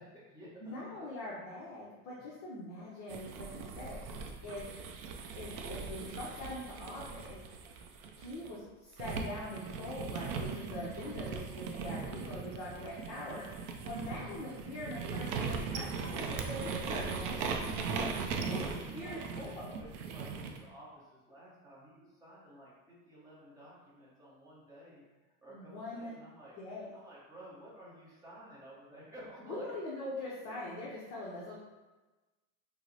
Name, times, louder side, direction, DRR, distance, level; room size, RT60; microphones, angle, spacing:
voice 1, 0.0-1.1 18.0-26.6 26.9-29.7 30.4-30.7, right 1 dB, 10° right, -7 dB, 0.7 m, -53 dB
voice 2, 0.6-4.0 4.4-4.8 5.4-7.4 8.1-17.5 18.5-18.6 18.9-19.8 25.5-26.2 26.6-26.9 29.4-31.6, left 1 dB, 35° left, -6 dB, 0.6 m, -43 dB
sound 1, 3.1-8.5 9.0-20.6, right 5 dB, 55° right, 0.5 m, -39 dB
4.7 x 2.0 x 2.7 m, 1.2 s
supercardioid pair, 150°, 44 cm